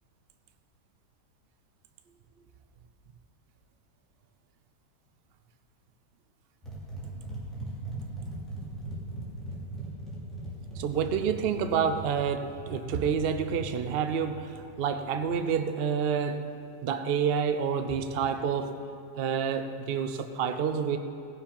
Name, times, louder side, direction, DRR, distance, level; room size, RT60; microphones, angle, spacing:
sound 1, 6.6-15.5 17.8-18.2, right 2 dB, ahead, 2.6 m, -40 dB
voice 1, 10.8-16.5 16.8-18.8 19.2-21.0, right 7 dB, 65° right, 8 dB, 0.5 m, -28 dB
16.5 x 7.3 x 5.3 m, 2.5 s
omnidirectional pair, 1.9 m